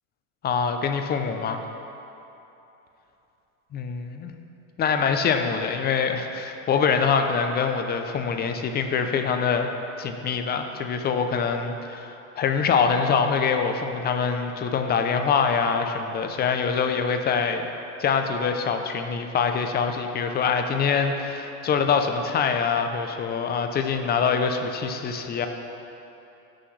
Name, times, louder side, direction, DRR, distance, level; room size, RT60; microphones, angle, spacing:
voice 1, 0.4-1.6 3.7-4.3 4.8-9.7 10.0-17.6 18.0-25.5, left 6 dB, 25° left, 6 dB, 0.5 m, -24 dB
15.5 x 6.3 x 3.2 m, 2.9 s
supercardioid pair, 130°, 42 cm